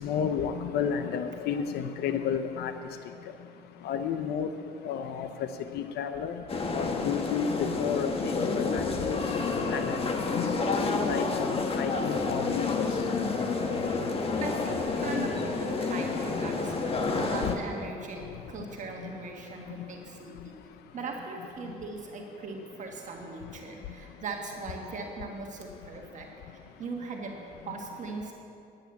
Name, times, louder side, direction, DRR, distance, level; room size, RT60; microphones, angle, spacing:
voice 1, 0.0-2.7 3.8-4.5 4.8-5.3 5.7-6.3 6.7-9.2 9.7-10.5 11.0-12.7 17.5-17.6, left 7 dB, 75° left, 9 dB, 0.6 m, -31 dB
sound 1, 6.5-17.5, left 4 dB, 35° left, 1.2 m, -29 dB
voice 2, 14.4-20.6 20.9-26.3 26.5-27.4 27.6-28.3, right 3 dB, 45° right, 0 dB, 1.6 m, -39 dB
10.5 x 9.3 x 7.0 m, 2.7 s
cardioid pair, 110°, 17 cm